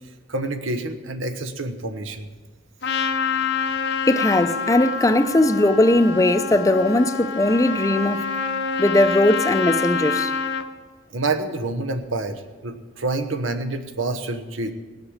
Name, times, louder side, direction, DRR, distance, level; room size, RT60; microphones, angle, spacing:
voice 1, 0.3-2.3 11.1-14.7, right 2 dB, 90° right, 1.2 m, -27 dB
Trumpet, 2.8-10.7, left 5 dB, 65° left, 0.9 m, -26 dB
voice 2, 4.1-8.3 8.8-10.3, left 1 dB, 15° left, 0.6 m, -19 dB
18.5 x 8.0 x 7.3 m
head